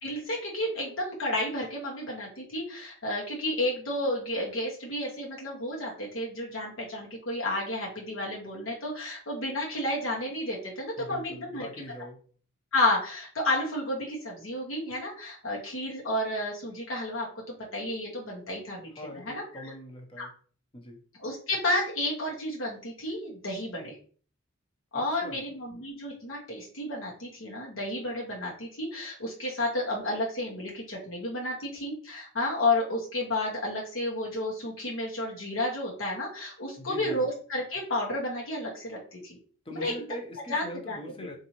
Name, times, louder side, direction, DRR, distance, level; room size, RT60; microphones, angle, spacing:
voice 1, 0.0-11.7 12.7-19.6 20.2-20.3 21.2-24.0 24.9-39.4 39.7-40.1 40.5-41.3, left 1 dB, 70° left, 1.0 m, -31 dB
voice 2, 11.0-12.2 19.0-20.3 20.7-21.0 24.9-25.4 36.8-37.2 39.6-41.3, left 1 dB, 25° left, 0.7 m, -42 dB
4.0 x 2.5 x 2.9 m
head